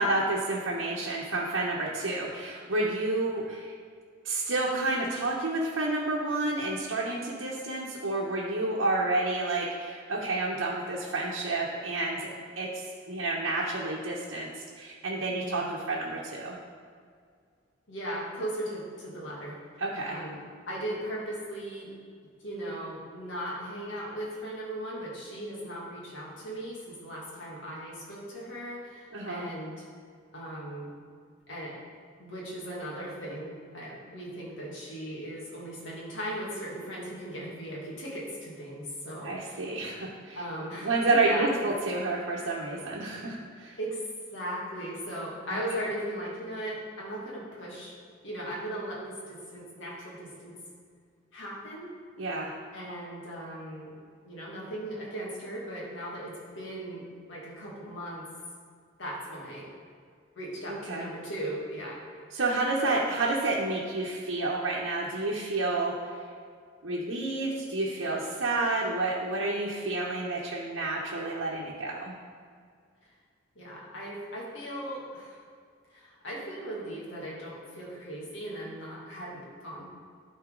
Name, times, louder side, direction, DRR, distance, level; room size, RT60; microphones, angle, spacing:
voice 1, 0.0-3.7 4.2-12.3 12.6-16.6 19.8-20.2 29.1-29.5 39.2-40.4 40.8-43.8 45.5-45.6 52.2-52.5 60.9-61.1 62.3-66.3 66.8-72.2, right 2 dB, 85° right, -5 dB, 1.0 m, -30 dB
voice 2, 15.3-15.8 17.9-19.6 20.1-20.4 20.7-21.9 22.4-29.8 30.3-30.9 31.5-31.8 32.2-39.8 40.3-41.5 43.8-44.0 44.3-48.0 48.2-50.6 51.3-51.9 52.7-53.9 54.2-58.3 59.0-59.7 60.4-62.0 73.6-75.4 75.9-79.9, right 1 dB, 75° left, -4 dB, 2.1 m, -38 dB
12.0 x 4.3 x 3.9 m, 2.1 s
head